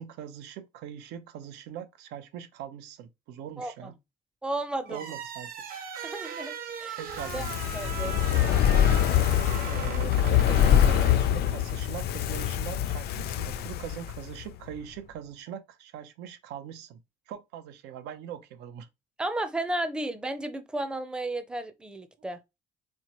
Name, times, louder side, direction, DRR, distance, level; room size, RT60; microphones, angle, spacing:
voice 1, 0.0-3.9 4.9-5.5 7.0-7.6 9.7-17.0 17.3-18.9, right 9 dB, 90° right, 0.7 m, -41 dB
voice 2, 3.6-3.9 4.4-5.0 6.0-7.0 7.3-7.5 7.7-8.2 19.2-22.4, right 1 dB, 5° right, 0.5 m, -33 dB
sound 1, 4.9-11.8, right 7 dB, 60° right, 1.1 m, -39 dB
Fire, 7.1-14.5 14.8-14.9, left 10 dB, 70° left, 0.5 m, -24 dB
4.4 x 2.2 x 2.9 m
cardioid pair, 110°, 17 cm